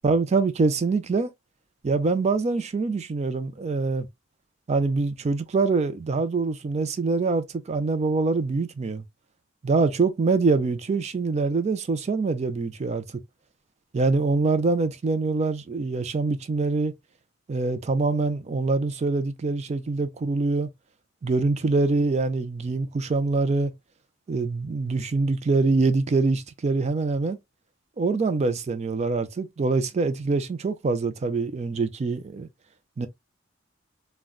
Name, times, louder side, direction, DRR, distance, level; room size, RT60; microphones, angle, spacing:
voice 1, 0.0-1.3 1.8-4.1 4.7-9.0 9.6-13.0 13.9-16.9 17.5-20.7 21.2-23.7 24.3-27.4 28.0-32.5 33.0-33.1, right 3 dB, 35° right, 0.4 m, -24 dB
3.7 x 2.1 x 2.2 m
head